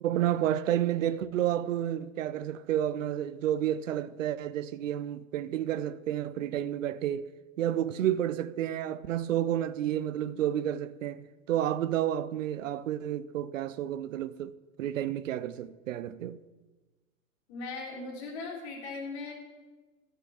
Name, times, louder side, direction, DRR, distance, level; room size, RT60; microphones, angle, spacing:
voice 1, 0.0-7.3 7.6-16.4, right 11 dB, 65° right, 0.6 m, -30 dB
voice 2, 17.5-19.3, left 3 dB, 50° left, 3.1 m, -38 dB
13.0 x 6.7 x 4.8 m
hypercardioid pair, 105°, 41 cm